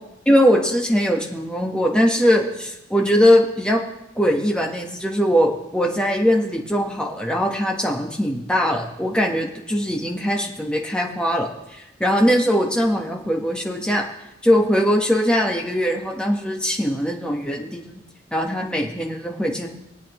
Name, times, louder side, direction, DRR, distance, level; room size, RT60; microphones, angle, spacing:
voice 1, 0.2-3.8 4.1-14.0 14.4-18.0 18.3-19.7, equal, 5° left, 0 dB, 1.3 m, -21 dB
22.5 x 8.5 x 3.1 m, 0.91 s
head